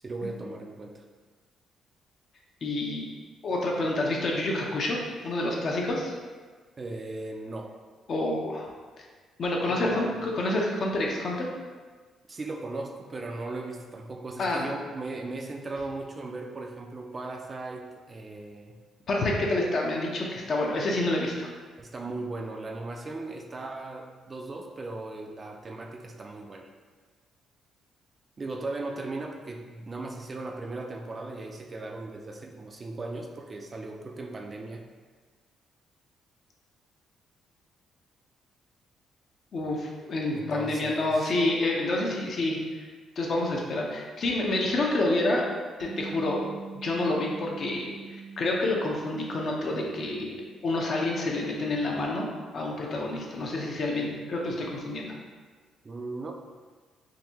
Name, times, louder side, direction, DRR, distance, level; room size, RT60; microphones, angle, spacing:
voice 1, 0.0-1.1 6.8-7.7 9.7-10.2 12.3-18.7 21.8-26.7 28.4-34.8 40.3-41.3 55.8-56.3, right 2 dB, 35° right, 3 dB, 0.4 m, -37 dB
voice 2, 2.6-3.1 3.4-5.0 5.2-6.1 8.1-8.7 9.4-11.5 14.4-14.7 19.1-21.5 39.5-42.8 43.2-45.4 45.8-46.4 46.7-55.1, left 2 dB, 55° left, -1 dB, 0.7 m, -28 dB
Bass guitar, 45.8-52.1, right 5 dB, 75° right, 0.6 m, -44 dB
3.8 x 2.6 x 2.9 m, 1.4 s
cardioid pair, 90°, 0 cm